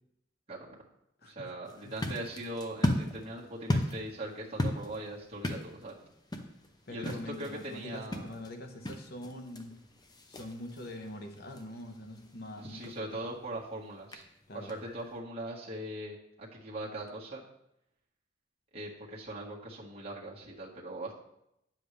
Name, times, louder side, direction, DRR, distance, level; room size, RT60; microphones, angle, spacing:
voice 1, 1.2-6.1 6.9-8.3 12.6-14.2 14.5-17.4 18.7-21.1, right 1 dB, 30° right, -6 dB, 1.6 m, -40 dB
sound 1, 1.7-15.2, left 1 dB, 20° left, 0.7 m, -38 dB
voice 2, 6.9-9.7 10.3-13.1 14.5-14.7, left 1 dB, 55° left, 6 dB, 1.0 m, -44 dB
9.5 x 7.4 x 3.3 m, 0.80 s
head